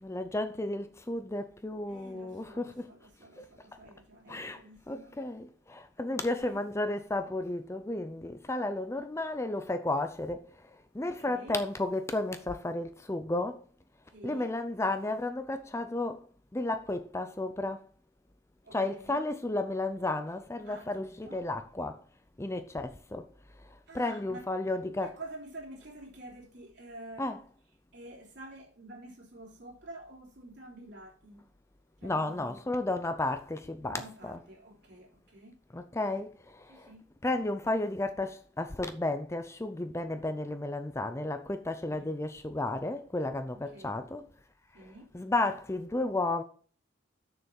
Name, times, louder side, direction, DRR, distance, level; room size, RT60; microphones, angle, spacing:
voice 1, 0.0-2.9 3.4-3.5 4.3-4.6 4.9-10.7 10.9-13.6 14.2-16.3 16.5-17.9 18.7-22.0 22.4-23.3 23.6-25.1 27.2-27.4 32.0-34.4 35.7-36.9 37.2-44.3 44.8-46.4, left 2 dB, 15° left, 0.5 m, -33 dB
voice 2, 1.9-5.1 6.1-6.6 11.0-11.6 14.1-14.5 18.6-19.2 20.6-21.4 23.9-24.4 24.7-27.4 27.9-31.4 32.0-32.6 33.8-35.6 36.7-37.1 41.9-42.1 43.5-43.9 44.7-45.1, right 1 dB, 60° right, 3.6 m, -49 dB
6.8 x 6.4 x 7.1 m
head